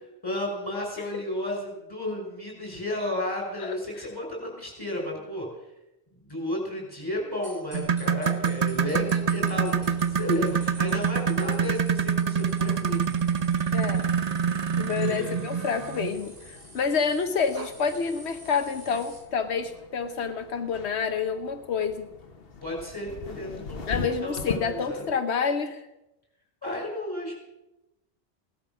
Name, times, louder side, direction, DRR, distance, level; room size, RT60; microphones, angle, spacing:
voice 1, 0.2-5.7 6.1-13.0 14.9-15.4 22.6-25.0 26.6-27.3, left 1 dB, 20° left, -1 dB, 5.8 m, -33 dB
sound 1, 7.4-19.2, right 1 dB, 70° right, 5.6 m, -49 dB
sound 2, 7.7-16.2 17.6-17.7 18.2-18.3 18.9-19.0, right 7 dB, 40° right, 0.8 m, -26 dB
sound 3, 8.7-25.1, left 4 dB, 65° left, 1.5 m, -43 dB
voice 2, 13.7-14.1 14.7-22.1 23.9-25.9, left 5 dB, 85° left, 7 dB, 1.2 m, -28 dB
17.0 x 12.0 x 6.1 m, 0.94 s
omnidirectional pair, 1.1 m